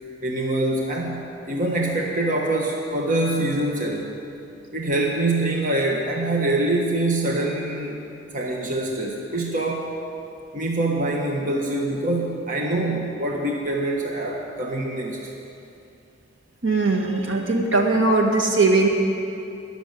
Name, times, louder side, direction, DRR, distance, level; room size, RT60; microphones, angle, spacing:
voice 1, 0.2-4.1 4.7-8.0 8.3-9.9 10.5-15.3, right 2 dB, 45° right, 0 dB, 1.3 m, -24 dB
voice 2, 16.6-18.9, right 3 dB, 80° right, 1 dB, 2.0 m, -20 dB
21.0 x 7.0 x 8.0 m, 2.7 s
head